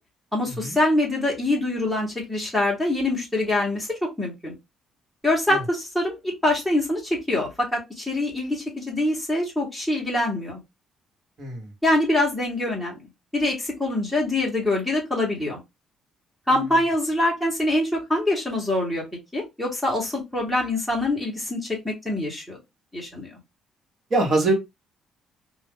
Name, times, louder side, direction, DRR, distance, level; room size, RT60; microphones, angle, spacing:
voice 1, 0.3-4.5 5.2-10.6 11.8-13.0 13.3-15.6 16.5-19.0 19.3-22.6 22.9-23.3, left 1 dB, 5° right, -2 dB, 1.1 m, -24 dB
voice 2, 11.4-11.7 24.1-24.5, right 2 dB, 35° right, 1 dB, 1.3 m, -23 dB
2.5 x 2.4 x 3.6 m, 0.21 s
cardioid pair, 145°, 0 cm